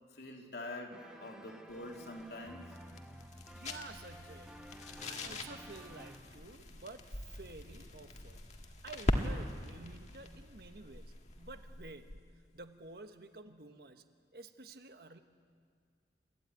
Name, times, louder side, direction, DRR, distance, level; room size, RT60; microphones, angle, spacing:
voice 1, 0.1-2.7, left 2 dB, 70° left, 1 dB, 3.0 m, -45 dB
sound 1, 0.9-6.2, equal, 5° right, 1.3 m, -52 dB
sound 2, 1.7-12.3, left 1 dB, 40° left, 1.7 m, -41 dB
voice 2, 3.3-4.5 4.9-8.4 8.8-12.3 12.5-14.0 14.3-15.2, right 2 dB, 60° right, 7 dB, 1.3 m, -51 dB
29.0 x 14.5 x 9.3 m, 2.1 s
head